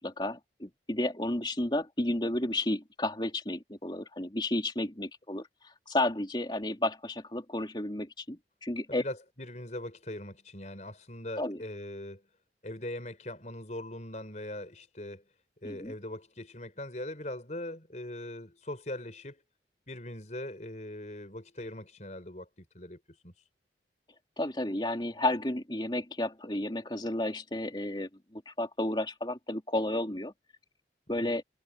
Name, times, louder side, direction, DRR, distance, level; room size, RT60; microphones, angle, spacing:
voice 1, 0.0-9.0 11.4-11.6 15.6-15.9 24.4-30.3 31.1-31.4, left 1 dB, 25° left, 3.0 m, -32 dB
voice 2, 8.9-12.2 12.6-15.2 15.6-19.4 19.9-23.3 31.2-31.3, left 1 dB, 40° left, 4.5 m, -41 dB
head